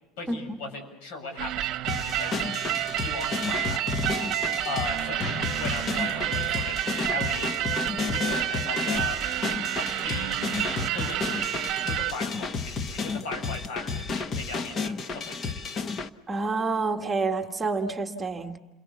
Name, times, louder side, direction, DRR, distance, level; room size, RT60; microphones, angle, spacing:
voice 1, 0.2-2.6 2.9-3.8 4.7-7.5 8.1-9.2 9.8-10.5 10.9-11.6 11.8-15.6, left 3 dB, 80° left, 5 dB, 7.4 m, -38 dB
sound 1, 1.4-12.1, right 15 dB, 50° right, 1.0 m, -29 dB
sound 2, 1.9-16.1, left 4 dB, 30° left, 1.0 m, -32 dB
voice 2, 16.3-18.6, right 3 dB, 15° right, 4 dB, 1.5 m, -28 dB
29.5 x 22.0 x 7.1 m, 1.1 s
cardioid pair, 145°, 0 cm